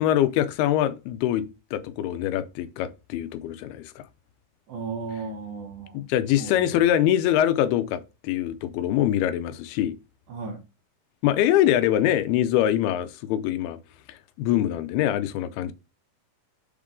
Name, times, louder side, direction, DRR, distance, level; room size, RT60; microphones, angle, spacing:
voice 1, 0.0-4.0 5.9-10.0 11.2-13.8 14.4-15.7, left 12 dB, 85° left, 2.6 m, -24 dB
voice 2, 4.7-6.0 6.3-6.9 10.3-10.6, right 4 dB, 65° right, 2.3 m, -35 dB
7.0 x 3.7 x 3.6 m
omnidirectional pair, 4.4 m